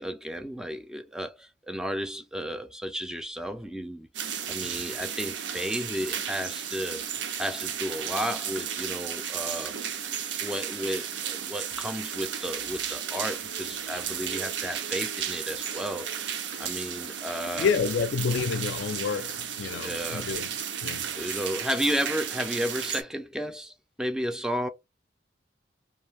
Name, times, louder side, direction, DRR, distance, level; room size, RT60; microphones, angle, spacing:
voice 1, 0.0-4.1 4.5-7.0 7.4-9.7 10.4-16.1 16.6-17.7 19.7-20.3 21.2-24.7, equal, 5° right, 0.3 m, -33 dB
sound 1, 4.1-23.0, right 8 dB, 70° right, 0.5 m, -34 dB
voice 2, 17.6-21.4, left 5 dB, 75° left, 0.4 m, -29 dB
2.6 x 2.3 x 3.3 m
head